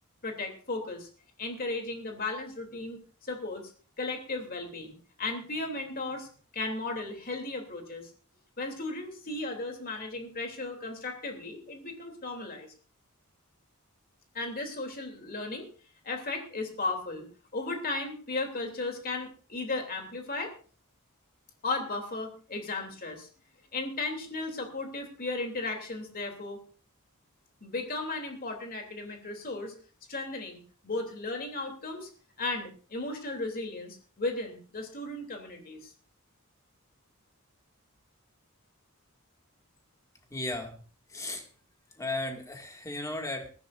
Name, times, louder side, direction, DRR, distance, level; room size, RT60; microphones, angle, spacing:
voice 1, 0.2-1.1 1.4-3.7 4.0-6.3 6.5-8.1 8.6-12.7 14.3-15.7 16.0-17.3 17.5-20.5 21.6-23.3 23.7-26.6 27.6-29.7 30.1-32.1 32.4-35.9, left 2 dB, 45° left, 3 dB, 3.1 m, -35 dB
voice 2, 40.3-40.8 41.1-41.5 41.9-43.5, left 2 dB, 15° left, 3 dB, 2.2 m, -35 dB
21.0 x 14.5 x 2.6 m, 0.40 s
head